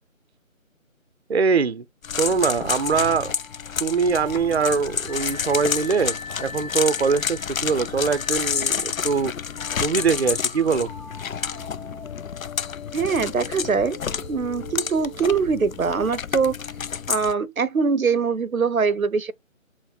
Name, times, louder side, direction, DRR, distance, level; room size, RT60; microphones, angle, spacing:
voice 1, 1.3-1.8 2.2-3.3 3.8-9.3 9.8-10.9, right 5 dB, 50° right, 0.5 m, -22 dB
sound 1, 2.0-17.3, left 7 dB, 75° left, 0.5 m, -29 dB
sound 2, 2.8-16.6, left 3 dB, 35° left, 2.0 m, -43 dB
voice 2, 12.9-14.0 14.3-16.6 17.1-19.3, right 5 dB, 85° right, 0.7 m, -23 dB
5.8 x 2.0 x 4.1 m
figure-of-eight pair, 155°, 41 cm